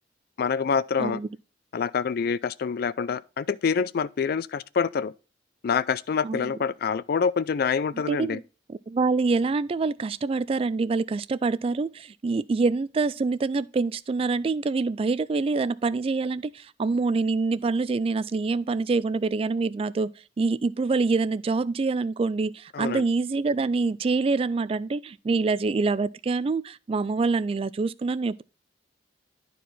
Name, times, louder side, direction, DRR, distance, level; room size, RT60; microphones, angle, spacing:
voice 1, 0.4-1.2 1.7-5.1 5.6-8.4 22.7-23.0, left 6 dB, 55° left, 0.4 m, -26 dB
voice 2, 8.1-8.4 8.7-20.1 20.4-28.4, right 4 dB, 30° right, 0.3 m, -26 dB
9.9 x 4.6 x 4.2 m
head